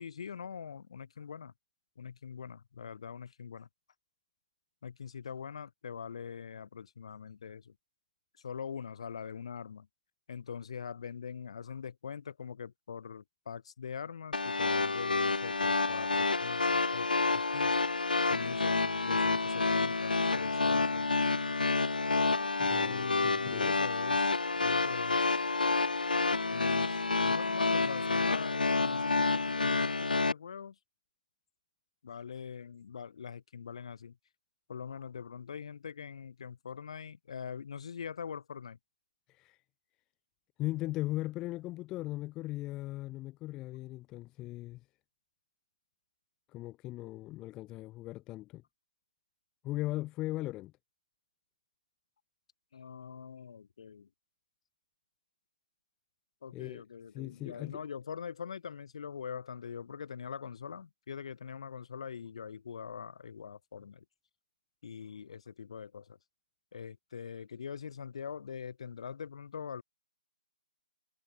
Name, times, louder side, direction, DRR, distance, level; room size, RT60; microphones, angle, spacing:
voice 1, 0.0-1.5 2.0-3.7 4.8-7.8 8.4-9.9 10.3-21.1 22.8-25.5 26.5-30.8 32.0-34.2 34.7-38.8 52.7-54.1 56.4-64.0 64.8-66.2 66.7-69.8, left 7 dB, 40° left, 1.0 m, -43 dB
sound 1, 14.3-30.3, left 3 dB, 70° left, 0.4 m, -29 dB
voice 2, 22.6-23.8 39.3-39.6 40.6-44.8 46.5-48.6 49.6-50.7 56.5-56.8 57.1-57.8, left 17 dB, 10° left, 0.5 m, -38 dB
figure-of-eight pair, 150°, 5 cm